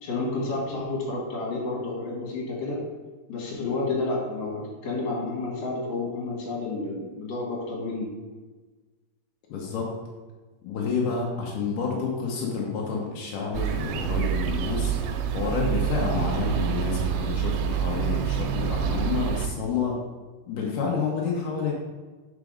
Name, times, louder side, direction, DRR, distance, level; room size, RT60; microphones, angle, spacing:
voice 1, 0.0-2.8 3.3-8.1, left 3 dB, 55° left, -4 dB, 2.2 m, -30 dB
voice 2, 9.5-9.9 10.6-14.9 15.3-20.0 20.5-21.7, left 5 dB, 85° left, -2 dB, 1.8 m, -29 dB
sound 1, 13.5-19.5, right 8 dB, 90° right, 2.8 m, -27 dB
5.1 x 4.8 x 4.9 m, 1.3 s
omnidirectional pair, 5.0 m